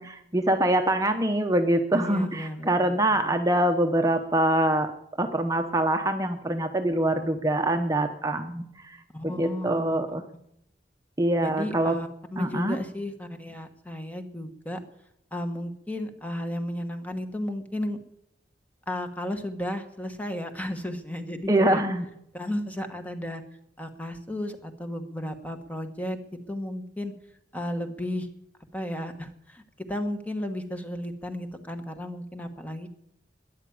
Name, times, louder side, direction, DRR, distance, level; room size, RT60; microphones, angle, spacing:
voice 1, 0.0-4.9 5.2-9.0 9.2-10.2 11.2-12.0 12.4-12.8 21.5-22.1, right 1 dB, 20° right, 6 dB, 0.9 m, -24 dB
voice 2, 1.9-3.3 9.1-9.8 11.4-14.8 15.3-18.0 18.9-21.8 22.3-23.4 23.8-26.2 26.5-27.1 27.5-28.3 28.7-29.6 29.9-32.9, left 1 dB, 10° left, 6 dB, 1.3 m, -34 dB
13.5 x 10.5 x 8.7 m, 0.77 s
head